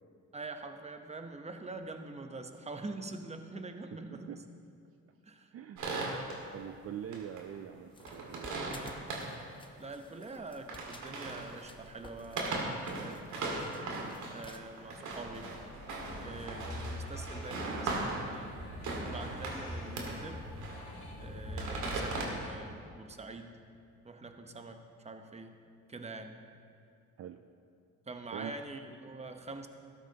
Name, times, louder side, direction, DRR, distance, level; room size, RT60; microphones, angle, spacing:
voice 1, 0.3-4.4 5.2-5.5 9.8-12.7 13.0-13.3 14.3-15.5 16.1-18.6 19.1-20.5 21.2-23.6 24.0-25.6 25.9-26.4 28.1-29.7, right 3 dB, 20° right, 6 dB, 0.9 m, -45 dB
voice 2, 4.1-4.4 5.5-5.8 6.5-8.7 27.2-27.4 28.3-28.5, right 9 dB, 50° right, 8 dB, 0.5 m, -43 dB
sound 1, 5.8-6.4 7.1-7.4 7.8-9.3 10.5-11.6 12.2-18.4 18.7-19.7 20.0-20.2 20.6-21.0 21.4-22.3, right 3 dB, 75° right, 2.0 m, -38 dB
sound 2, 7.9-14.6, left 2 dB, 15° left, 0.9 m, -54 dB
sound 3, 15.1-22.5, equal, 65° left, 2.9 m, -43 dB
13.0 x 12.5 x 2.9 m, 2.3 s
cardioid pair, 90°, 30 cm